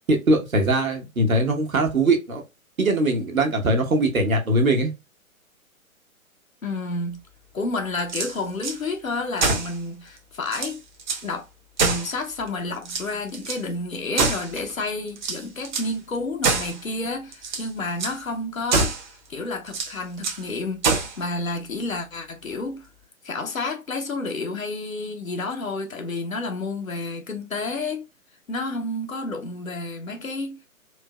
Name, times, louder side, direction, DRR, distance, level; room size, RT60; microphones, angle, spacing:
voice 1, 0.1-2.4 2.8-4.9, right 1 dB, 70° right, 1.3 m, -21 dB
voice 2, 6.6-7.2 7.5-10.8 11.2-11.5 11.8-19.0 19.3-20.8 21.2-22.9 23.2-28.0 28.5-30.6, left 2 dB, 70° left, 0.9 m, -30 dB
sound 1, 8.0-8.8 9.4-9.8 10.2-10.3 10.5-11.3 11.8-12.5 12.8-13.6 14.1-14.7 15.2-15.9 16.4-16.8 17.3-17.7 18.0-18.2 18.7-19.1 19.7-20.4 20.8-21.2, right 4 dB, 35° right, 0.9 m, -25 dB
4.4 x 2.7 x 2.3 m
figure-of-eight pair, 130°, 42 cm